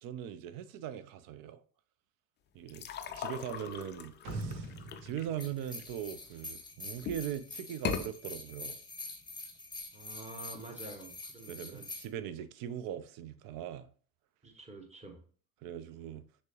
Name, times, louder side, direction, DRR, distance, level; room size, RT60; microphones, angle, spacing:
voice 1, 0.0-1.6 2.5-2.8 3.1-4.7 5.0-8.8 11.5-13.9 15.6-16.2, right 10 dB, 50° right, 0.5 m, -40 dB
sound 1, 2.7-6.5 7.0-7.4 7.7-8.1, left 8 dB, 25° left, 0.4 m, -40 dB
sound 2, 4.2-6.8, right 3 dB, 70° right, 1.1 m, -42 dB
sound 3, 5.4-12.1, left 3 dB, 10° left, 0.8 m, -45 dB
voice 2, 9.9-11.8 14.4-15.2, right 2 dB, 15° right, 1.0 m, -48 dB
6.1 x 2.1 x 2.8 m
hypercardioid pair, 60°, 45 cm